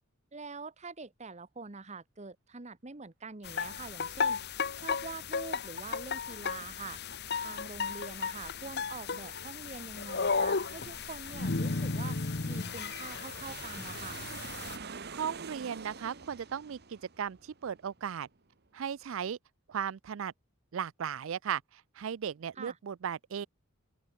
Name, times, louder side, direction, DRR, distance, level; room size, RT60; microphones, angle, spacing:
voice 1, 0.3-4.4 4.8-7.0 7.4-14.2 22.6-22.8, right 4 dB, 30° right, 1.0 m, -45 dB
sound 1, 3.4-14.8, left 5 dB, 50° left, 1.0 m, -34 dB
Aircraft, 7.2-18.4, right 5 dB, 45° right, 1.4 m, -48 dB
voice 2, 15.1-18.3 18.7-19.4 19.7-20.3 20.7-23.5, right 8 dB, 65° right, 0.4 m, -36 dB
open air
head